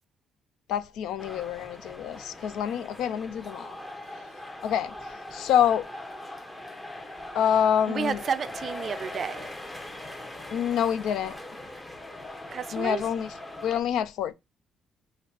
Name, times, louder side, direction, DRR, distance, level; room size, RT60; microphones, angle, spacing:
voice 1, 0.7-3.8 4.6-4.9 5.3-5.9 7.3-8.2 10.5-11.3 12.7-13.3 13.6-14.3, left 9 dB, 85° left, 0.3 m, -26 dB
sound 1, 1.2-13.8, left 1 dB, 20° left, 0.8 m, -41 dB
voice 2, 7.9-9.5 12.5-13.0, right 6 dB, 50° right, 0.3 m, -31 dB
3.3 x 2.7 x 4.2 m
cardioid pair, 90°, 0 cm